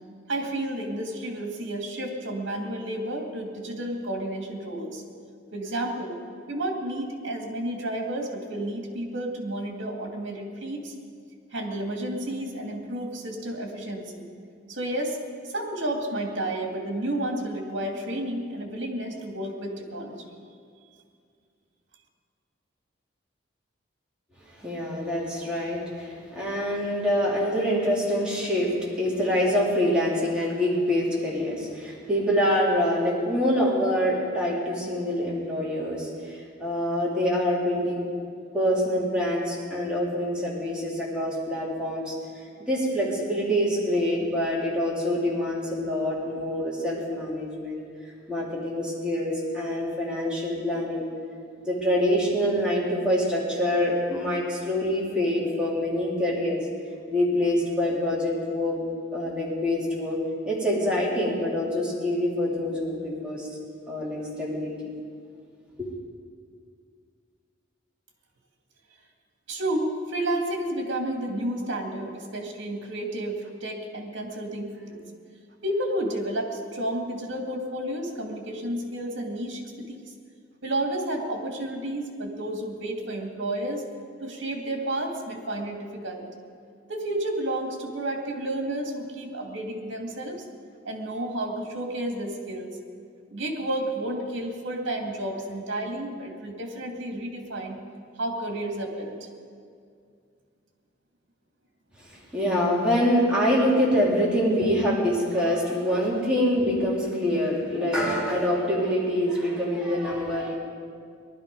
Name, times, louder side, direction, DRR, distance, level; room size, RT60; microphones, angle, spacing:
voice 1, 0.3-5.0 5.5-6.2 6.5-10.9 11.5-14.2 14.7-15.2 15.4-20.4 69.5-75.0 75.6-80.0 80.6-83.9 84.2-86.3 86.9-90.4 90.8-92.7 93.3-97.8 98.2-99.3, right 1 dB, 65° right, 2 dB, 2.4 m, -31 dB
voice 2, 24.6-38.1 38.5-42.1 42.6-47.8 48.3-51.0 51.7-56.6 57.1-60.2 60.5-63.5 63.9-64.9 65.8-65.9 102.1-110.5, equal, 5° right, -6 dB, 3.5 m, -25 dB
19.0 x 12.0 x 5.4 m, 2.3 s
head